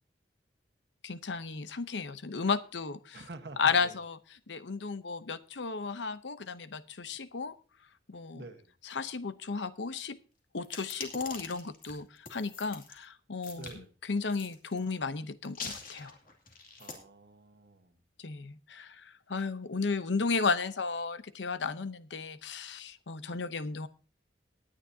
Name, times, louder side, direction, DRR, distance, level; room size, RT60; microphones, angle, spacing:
voice 1, 1.0-3.2 3.6-4.2 4.5-7.5 8.1-8.4 8.9-10.2 10.5-13.8 14.1-16.2 18.2-23.9, left 4 dB, 85° left, 12 dB, 0.8 m, -34 dB
voice 2, 3.1-4.0 8.3-8.7 13.5-13.9 16.8-18.0, right 2 dB, 65° right, 8 dB, 1.3 m, -48 dB
sound 1, 10.6-13.0 13.4-13.8 14.3-14.9 15.4-16.9, left 4 dB, 50° left, 2.5 m, -43 dB
19.0 x 10.0 x 2.7 m, 0.36 s
head